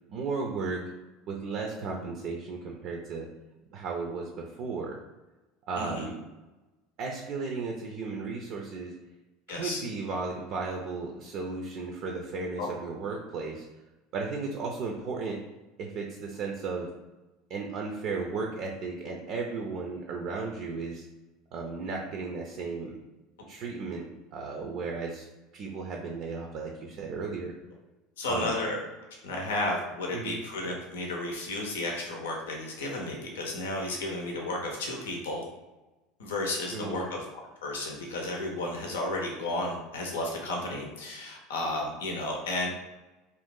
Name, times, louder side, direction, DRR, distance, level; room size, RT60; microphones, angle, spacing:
voice 1, 0.1-0.8 1.3-3.3 3.7-5.0 5.7-6.2 7.0-8.9 9.5-13.7 14.1-15.4 15.8-16.9 17.5-21.0 21.5-23.0 23.5-25.3 25.5-27.5 28.3-28.6 30.1-30.4 36.7-37.1, right 4 dB, 55° right, 1 dB, 0.5 m, -35 dB
voice 2, 5.8-6.1 9.5-9.8 12.6-12.7 28.2-28.8 29.2-35.4 36.2-37.2 37.6-42.7, left 2 dB, 80° left, 0 dB, 0.6 m, -33 dB
2.6 x 2.4 x 3.6 m, 1.1 s
hypercardioid pair, 75°, 0 cm